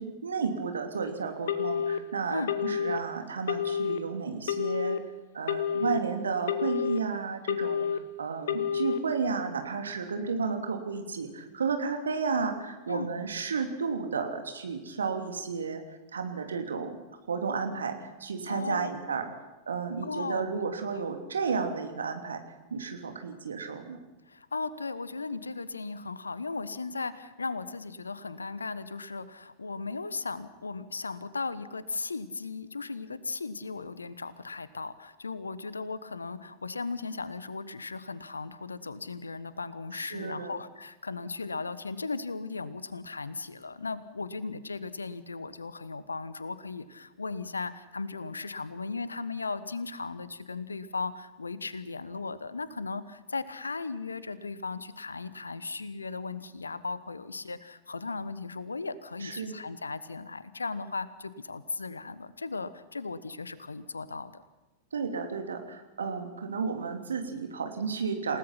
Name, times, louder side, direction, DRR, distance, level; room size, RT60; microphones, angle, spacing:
voice 1, 0.0-5.0 5.3-15.8 16.1-16.9 17.3-19.2 19.7-22.4 22.7-24.0 39.9-40.5 59.2-59.6 64.9-68.4, right 5 dB, 70° right, 5 dB, 3.0 m, -32 dB
Telephone, 1.5-2.0 2.5-3.0 3.5-4.0 4.5-5.0 5.5-6.0 6.5-7.0 7.5-8.0 8.5-9.0, left 8 dB, 60° left, 1.4 m, -29 dB
voice 2, 18.5-18.9 19.3-19.4 20.0-20.6 20.9-21.0 24.3-64.4, left 4 dB, 75° left, 16 dB, 1.2 m, -37 dB
28.5 x 17.5 x 5.9 m, 1.1 s
figure-of-eight pair, 90°, 0 cm